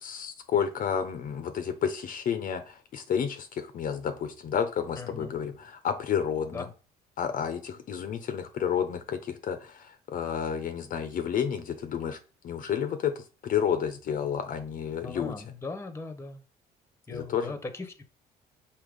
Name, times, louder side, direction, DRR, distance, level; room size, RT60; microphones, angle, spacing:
voice 1, 0.0-6.6 7.2-12.2 12.4-15.4 17.1-17.5, left 8 dB, 55° left, 9 dB, 0.7 m, -31 dB
voice 2, 5.0-5.3 6.5-6.7 15.0-16.4 17.1-18.0, left 3 dB, 15° left, 9 dB, 0.9 m, -39 dB
6.4 x 2.9 x 5.2 m, 0.36 s
cardioid pair, 110°, 17 cm